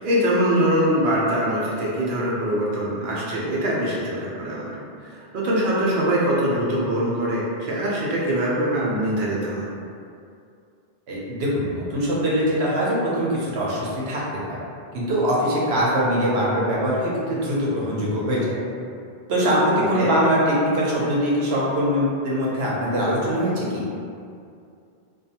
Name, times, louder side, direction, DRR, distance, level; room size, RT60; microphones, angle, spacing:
voice 1, 0.0-4.7 5.1-9.7 19.9-20.1, equal, 60° right, -6 dB, 0.7 m, -23 dB
voice 2, 11.1-14.2 14.5-14.6 14.9-18.6 19.3-23.8, equal, 85° right, -6 dB, 0.9 m, -22 dB
2.5 x 2.2 x 2.8 m, 2.4 s
omnidirectional pair, 1.1 m